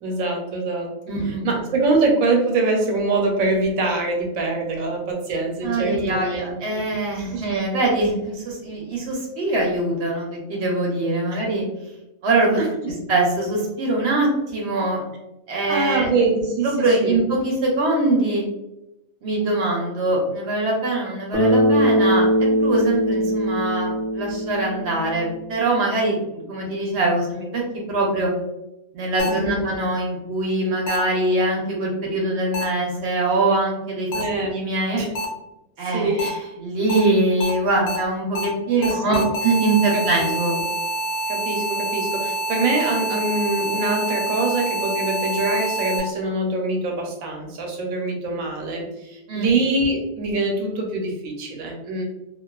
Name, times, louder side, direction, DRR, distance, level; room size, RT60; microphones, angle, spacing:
voice 1, 0.0-0.9 1.2-6.6 7.3-7.5 11.3-11.4 12.6-12.9 15.7-17.2 29.3-29.7 34.1-34.5 34.9-35.1 35.9-36.3 38.8-39.3 39.9-40.6 41.3-52.0, right 2 dB, 80° right, 1 dB, 1.0 m, -24 dB
voice 2, 1.1-1.6 5.6-11.7 12.2-12.6 13.1-15.0 15.5-16.1 16.6-18.4 19.2-22.3 22.6-28.3 28.9-34.1 34.5-35.0 35.8-40.6 49.3-49.5, right 2 dB, 60° right, -1 dB, 0.8 m, -23 dB
Bass guitar, 21.3-25.5, equal, 30° right, 0.6 m, -21 dB
sound 1, 29.2-29.3 30.9-31.0 32.5-32.6 34.1-34.2 35.2-35.3 36.2-36.3 36.9-37.0 37.4-37.5 37.9-38.0 38.4-38.5 38.8-46.0, right 2 dB, 80° left, 1.0 m, -26 dB
2.4 x 2.3 x 2.2 m, 0.92 s
omnidirectional pair, 1.4 m